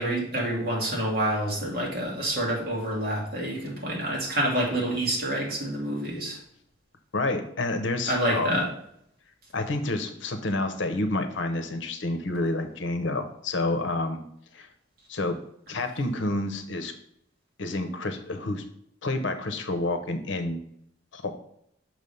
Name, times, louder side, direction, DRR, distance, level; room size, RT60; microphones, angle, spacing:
voice 1, 0.0-6.4 8.1-8.7, right 1 dB, 50° right, -2 dB, 1.8 m, -27 dB
voice 2, 7.1-8.6 9.5-14.2 14.5-14.7 15.1-15.4 15.7-16.9 17.6-18.6 19.0-20.6 21.1-21.3, left 2 dB, 75° left, 7 dB, 0.8 m, -29 dB
6.1 x 3.3 x 5.4 m, 0.71 s
head